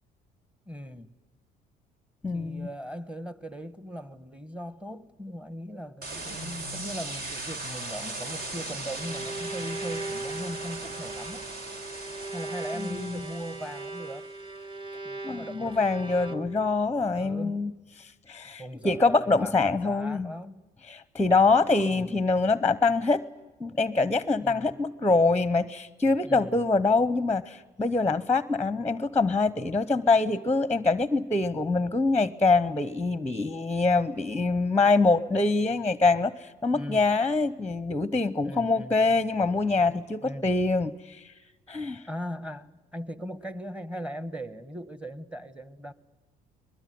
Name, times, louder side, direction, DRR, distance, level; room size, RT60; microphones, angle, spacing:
voice 1, 0.7-1.1 2.3-11.5 12.3-14.3 15.0-16.1 17.1-17.6 18.6-20.6 21.9-22.3 24.4-24.8 26.2-26.7 36.7-37.2 38.4-39.0 40.2-40.5 42.1-45.9, equal, 5° right, 1.3 m, -39 dB
voice 2, 2.2-2.7 12.8-13.2 15.2-17.7 18.0-20.3 20.9-23.2 23.6-41.2 41.7-42.0, left 3 dB, 10° left, 0.8 m, -25 dB
sound 1, 6.0-14.2, right 2 dB, 65° right, 4.7 m, -38 dB
Bowed string instrument, 8.7-16.8, right 2 dB, 30° right, 1.3 m, -38 dB
22.5 x 21.0 x 9.4 m
cardioid pair, 110°, 17 cm